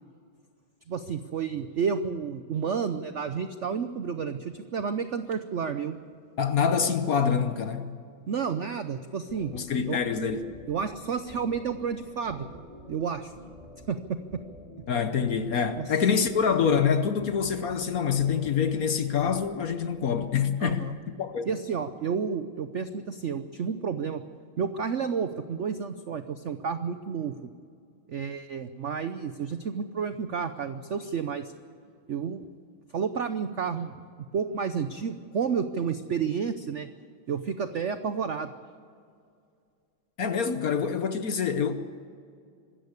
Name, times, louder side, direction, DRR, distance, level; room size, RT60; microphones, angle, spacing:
voice 1, 0.9-6.0 8.3-9.5 9.9-10.0 10.7-12.5 12.9-13.3 13.9-14.2 15.8-15.9 20.6-21.0 21.4-24.2 24.6-27.5 28.1-31.5 32.1-32.5 32.9-36.9 37.3-38.5, right 6 dB, 70° right, 0.7 m, -31 dB
voice 2, 6.4-7.9 9.5-10.5 14.9-20.9 21.2-21.5 40.2-41.7, left 6 dB, 55° left, 1.2 m, -26 dB
sound 1, 9.3-20.2, left 1 dB, 20° right, 4.2 m, -49 dB
24.5 x 13.5 x 8.2 m
omnidirectional pair, 2.2 m